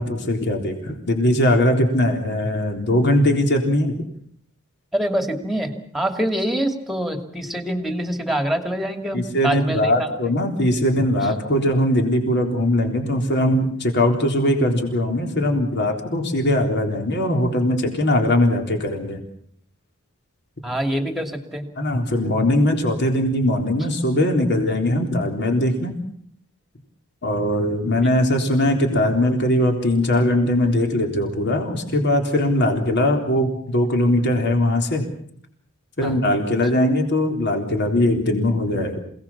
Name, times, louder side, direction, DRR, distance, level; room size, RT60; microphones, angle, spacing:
voice 1, 0.0-3.9 9.1-19.2 21.8-25.9 27.2-35.0 36.0-39.0, left 1 dB, 50° left, 3 dB, 3.7 m, -20 dB
voice 2, 4.9-10.3 11.2-11.3 20.6-21.7 36.0-36.2, right 1 dB, ahead, 6 dB, 2.5 m, -25 dB
27.5 x 18.0 x 7.3 m, 0.65 s
head